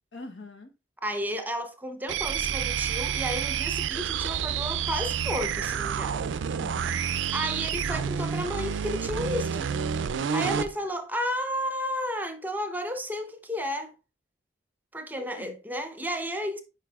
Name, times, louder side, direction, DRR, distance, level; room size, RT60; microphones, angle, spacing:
voice 1, 0.1-0.7 6.6-7.3 10.2-10.6 15.1-15.6, left 1 dB, 85° left, 1.2 m, -43 dB
voice 2, 1.0-6.2 7.3-9.7 10.1-13.9 14.9-16.6, equal, 10° right, 0.8 m, -32 dB
sound 1, 2.1-10.7, right 7 dB, 90° right, 0.4 m, -29 dB
8.7 x 4.9 x 2.3 m
head